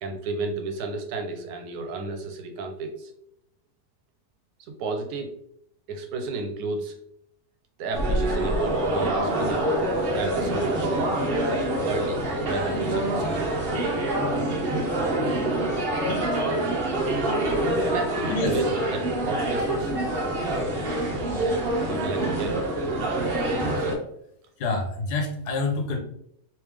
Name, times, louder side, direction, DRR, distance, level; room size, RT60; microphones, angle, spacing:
voice 1, 0.0-3.1 4.7-5.3 5.9-7.0 7.8-9.7 10.1-11.1 11.8-13.5 17.9-19.9 21.4-21.6 21.9-22.7, right 3 dB, 75° right, 5 dB, 1.2 m, -32 dB
sound 1, 7.9-23.9, right 1 dB, 50° right, 0.8 m, -26 dB
voice 2, 17.7-18.6 24.6-26.0, left 3 dB, 80° left, 3 dB, 1.4 m, -28 dB
3.2 x 3.1 x 3.4 m, 0.74 s
omnidirectional pair, 1.7 m